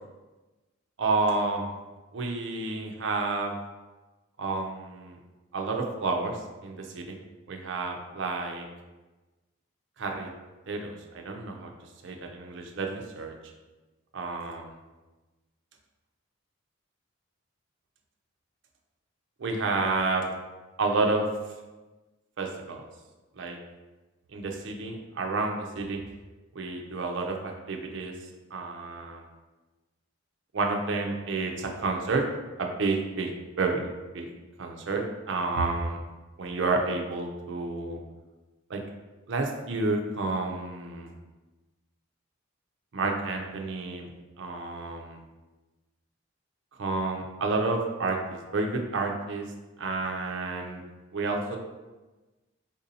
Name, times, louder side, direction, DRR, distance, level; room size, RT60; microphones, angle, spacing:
voice 1, 1.0-1.8 2.1-3.5 4.4-5.2 5.5-7.2 7.5-8.6 10.0-10.3 10.7-11.7 12.0-13.3 14.1-14.8 19.4-20.3 20.8-21.3 22.4-22.9 23.4-23.6 24.3-26.0 26.5-28.1 28.5-29.3 30.5-32.2 32.6-33.3 33.6-33.9 34.1-34.3 34.6-36.0 36.4-38.0 38.7-38.8 39.3-41.1 42.9-44.1 44.4-45.2 46.8-49.5 49.8-50.8 51.1-51.6, right 3 dB, 60° right, 2 dB, 0.4 m, -30 dB
3.6 x 2.6 x 2.7 m, 1.2 s
head